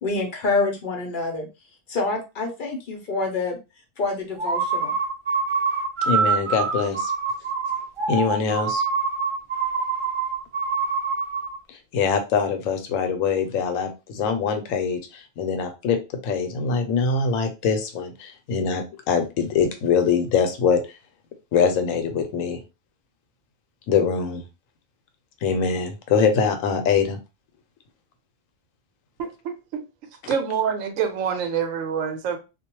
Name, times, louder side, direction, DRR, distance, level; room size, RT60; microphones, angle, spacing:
voice 1, 0.0-1.5 1.9-3.6 4.0-4.9, left 3 dB, 50° left, 0.6 m, -26 dB
sound 1, 4.4-11.6, right 5 dB, 50° right, 0.3 m, -25 dB
voice 2, 6.0-7.1 8.1-8.8 11.7-20.8 21.5-22.6 23.9-24.4 25.4-27.2, left 6 dB, 90° left, 1.0 m, -23 dB
voice 3, 29.2-29.8 30.3-32.4, right 7 dB, 90° right, 1.0 m, -26 dB
2.3 x 2.1 x 2.9 m
omnidirectional pair, 1.3 m